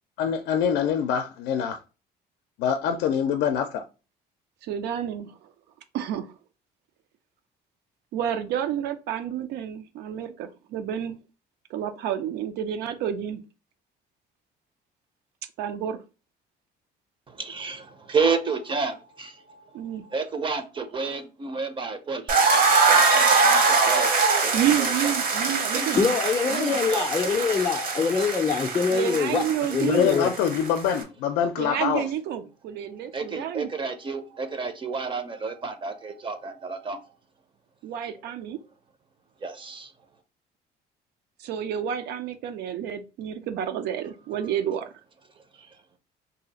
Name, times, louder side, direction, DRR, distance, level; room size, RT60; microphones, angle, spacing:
voice 1, 0.2-1.8 2.6-3.8 29.9-32.0, left 8 dB, 85° left, 0.4 m, -25 dB
voice 2, 4.6-5.5 5.9-6.3 8.1-11.2 11.7-13.4 15.6-16.0 19.7-20.0 24.5-26.1 26.5-26.8 28.9-30.1 31.6-33.7 37.8-38.6 41.4-44.9, right 10 dB, 80° right, 0.5 m, -30 dB
voice 3, 17.3-22.3 22.9-24.1 24.4-24.7 25.0-25.1 25.7-26.0 26.9-27.1 33.1-37.0 39.4-39.9 45.5-45.7, right 4 dB, 30° right, 0.5 m, -31 dB
sound 1, 22.3-31.0, right 4 dB, 55° right, 0.8 m, -23 dB
voice 4, 26.0-29.4 29.7-30.3, left 5 dB, 25° left, 0.4 m, -24 dB
2.7 x 2.4 x 4.0 m
cardioid pair, 110°, 17 cm